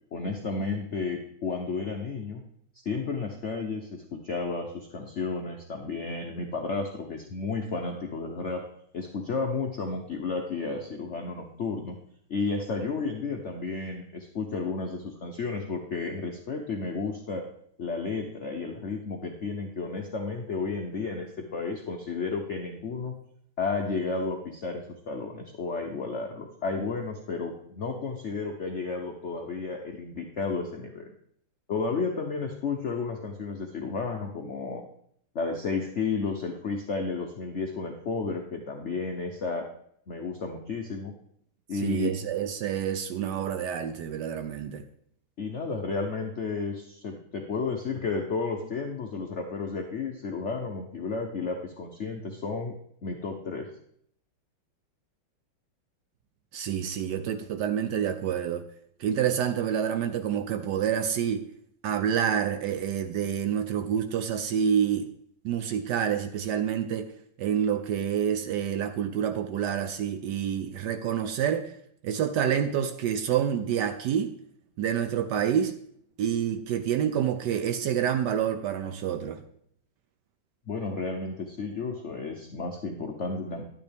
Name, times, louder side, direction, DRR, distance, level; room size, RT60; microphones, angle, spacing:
voice 1, 0.1-2.4 2.8-8.6 8.9-12.0 12.3-17.5 17.8-23.1 23.6-31.1 31.7-34.8 35.3-39.7 40.1-41.1 41.7-42.1 45.4-52.7 53.0-53.7 80.7-83.6, left 4 dB, 75° left, 2 dB, 0.6 m, -32 dB
voice 2, 41.8-44.8 56.5-58.6 59.0-61.4 61.8-65.1 65.4-67.1 67.4-71.7 72.0-74.3 74.8-75.8 76.2-79.4, right 9 dB, 70° right, 8 dB, 1.0 m, -28 dB
10.5 x 9.0 x 3.5 m, 0.67 s
omnidirectional pair, 2.3 m